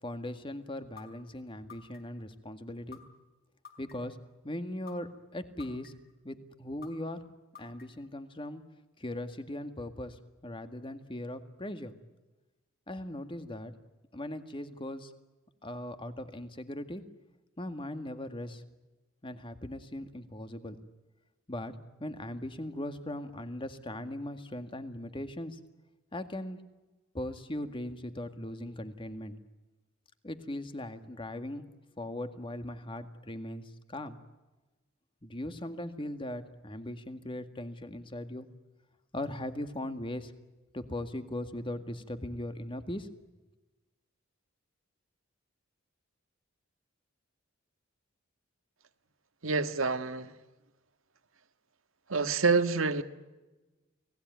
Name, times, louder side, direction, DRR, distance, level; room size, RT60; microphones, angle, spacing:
voice 1, 0.0-3.0 3.8-4.2 4.4-5.9 6.2-7.2 7.6-8.6 9.0-11.9 12.9-13.7 14.1-15.1 15.6-17.0 17.6-18.6 19.2-20.8 21.5-21.7 22.0-25.6 26.1-26.6 27.1-29.4 30.2-31.6 32.0-34.2 35.2-38.5 39.1-40.3 40.7-43.1, left 1 dB, 25° left, 2.0 m, -39 dB
sound 1, 1.0-1.1 1.7-2.2 2.9-3.0 3.6-4.2 4.9-5.0 5.6-6.1 6.8-6.9 7.6-8.1, left 7 dB, 50° left, 4.5 m, -49 dB
voice 2, 49.4-50.3 52.1-53.0, right 4 dB, 85° right, 1.6 m, -27 dB
29.5 x 19.5 x 9.4 m
head